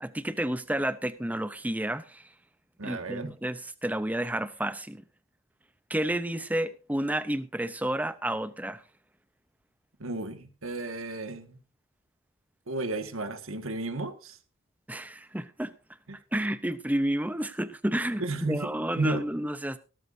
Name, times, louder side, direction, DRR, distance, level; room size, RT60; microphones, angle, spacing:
voice 1, 0.0-2.3 2.8-5.0 5.9-8.8 14.9-15.7 16.3-19.8, right 1 dB, 5° right, 13 dB, 0.7 m, -30 dB
voice 2, 2.8-3.3 10.0-11.6 12.7-14.4 16.1-16.2 18.2-18.6 18.9-19.2, right 2 dB, 85° right, 8 dB, 1.8 m, -33 dB
17.5 x 13.5 x 2.7 m, 0.34 s
head